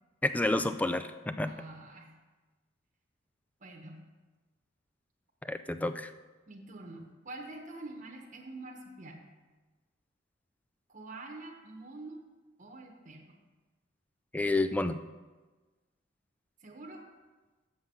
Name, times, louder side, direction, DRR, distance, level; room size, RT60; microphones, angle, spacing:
voice 1, 0.2-1.5 5.5-6.1 14.3-15.0, left 2 dB, 10° left, 11 dB, 0.3 m, -29 dB
voice 2, 1.4-2.2 3.6-4.1 6.5-9.3 10.9-12.2 12.6-13.4 16.6-17.0, right 2 dB, 40° right, 0 dB, 1.1 m, -46 dB
7.7 x 7.3 x 5.5 m, 1.2 s
head